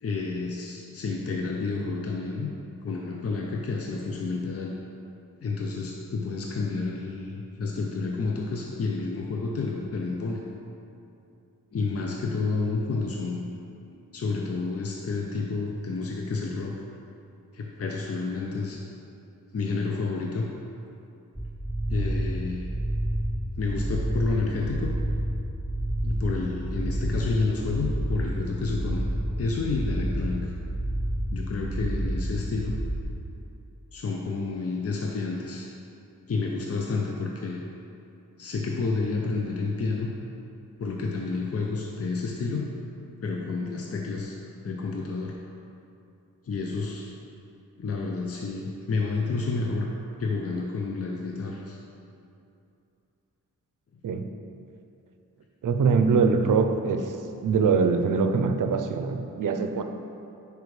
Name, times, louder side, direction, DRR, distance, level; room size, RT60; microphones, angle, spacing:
voice 1, 0.0-2.5 2.8-4.7 5.4-10.4 11.7-13.5 14.1-16.7 17.5-18.8 19.5-20.5 21.9-22.7 23.6-24.9 26.0-29.0 29.4-30.5 31.3-32.8 33.9-35.7 36.3-37.6 38.4-40.1 40.8-42.7 43.2-44.4 44.6-45.4 46.4-47.1 47.8-49.9 50.2-51.8, left 3 dB, 45° left, 0 dB, 0.7 m, -30 dB
sound 1, 21.3-33.0, right 1 dB, ahead, 0.4 m, -29 dB
voice 2, 55.6-57.1 57.4-59.8, right 5 dB, 70° right, 7 dB, 0.6 m, -23 dB
9.6 x 4.8 x 3.2 m, 2.7 s
cardioid pair, 65°, 33 cm